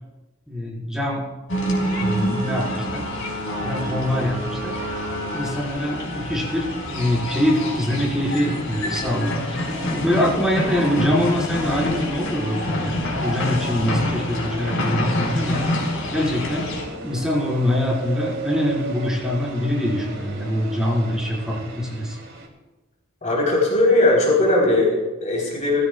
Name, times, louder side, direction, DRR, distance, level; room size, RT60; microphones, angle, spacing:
voice 1, 0.5-1.2 1.8-3.1 3.6-4.8 5.3-15.6 16.1-16.7 17.0-22.2, left 1 dB, 5° right, -6 dB, 4.8 m, -24 dB
sound 1, 1.5-16.8, left 1 dB, 65° left, 4.9 m, -27 dB
sound 2, 11.3-22.5, right 2 dB, 65° right, 3.1 m, -36 dB
voice 2, 23.2-25.8, left 2 dB, 35° left, -3 dB, 4.0 m, -19 dB
20.0 x 15.5 x 2.4 m, 1.1 s
head